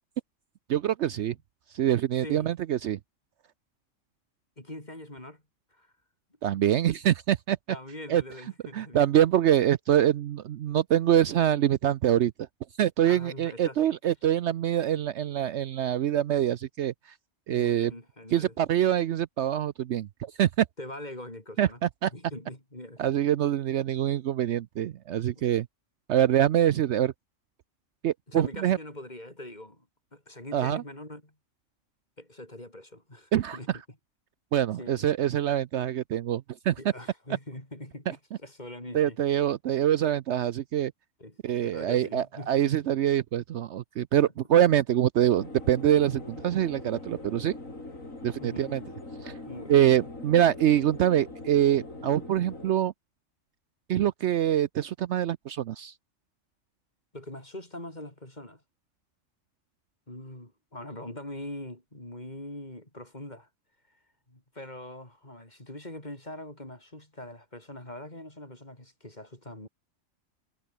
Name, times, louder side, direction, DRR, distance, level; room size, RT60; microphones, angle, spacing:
voice 1, 0.7-1.4 1.7-3.0 6.4-7.6 8.1-8.2 8.7-12.3 12.8-16.9 17.5-17.9 18.3-20.7 21.6-21.7 22.0-22.1 23.0-25.7 26.1-27.1 28.0-28.8 30.5-30.8 33.3-33.6 34.5-36.8 38.9-40.9 41.4-47.6 48.2-48.8 49.2-49.3 49.7-52.9 53.9-55.9, right 11 dB, 65° right, 0.9 m, -25 dB
voice 2, 2.2-2.5 4.6-5.4 5.7-5.9 7.7-9.0 13.1-13.8 17.5-18.5 20.8-21.8 22.1-23.0 25.4-25.5 28.3-29.9 30.1-31.3 32.2-33.7 34.8-35.1 36.8-39.2 41.2-42.7 44.2-44.3 48.4-48.9 49.5-50.1 57.1-58.6 60.1-63.5 63.9-64.0 64.3-69.7, left 1 dB, 35° left, 5.6 m, -43 dB
sound 1, 45.3-52.7, left 2 dB, 85° left, 5.9 m, -42 dB
omnidirectional pair, 1.3 m